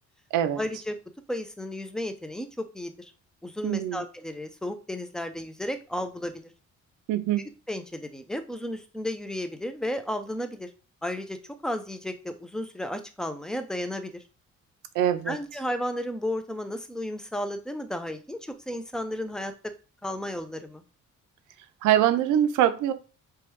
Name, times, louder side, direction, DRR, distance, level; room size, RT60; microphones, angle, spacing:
voice 1, 0.6-1.0 1.3-3.1 3.4-6.5 7.7-10.7 11.0-14.2 15.3-19.7 20.0-20.8, left 1 dB, ahead, 0.4 m, -33 dB
voice 2, 3.6-4.0 7.1-7.5 14.9-15.4 21.8-22.9, right 11 dB, 90° right, 0.5 m, -23 dB
3.1 x 2.2 x 3.0 m
cardioid pair, 90°, 30 cm